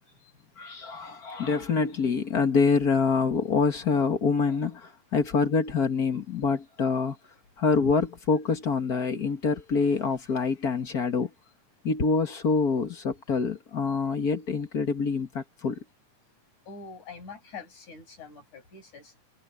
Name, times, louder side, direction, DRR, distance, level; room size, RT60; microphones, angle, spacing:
voice 1, 0.6-7.2 7.6-11.3 11.8-15.8, left 5 dB, 40° left, 1.6 m, -26 dB
voice 2, 16.7-19.1, left 4 dB, 65° left, 8.6 m, -44 dB
omnidirectional pair, 3.7 m